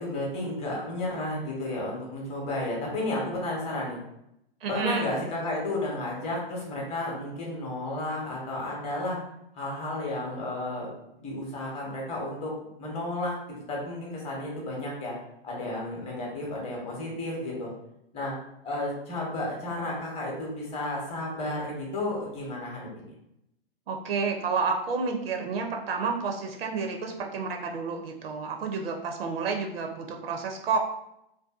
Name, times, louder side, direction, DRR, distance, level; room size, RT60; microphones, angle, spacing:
voice 1, 0.0-4.0 4.7-9.2 9.6-10.9 11.2-12.5 12.8-13.3 13.7-15.1 15.4-17.7 18.1-18.3 18.6-23.1, left 1 dB, 20° left, -3 dB, 0.8 m, -32 dB
voice 2, 4.6-5.1 23.9-30.8, right 5 dB, 70° right, 2 dB, 0.5 m, -30 dB
2.6 x 2.2 x 2.3 m, 0.82 s
hypercardioid pair, 115°, 31 cm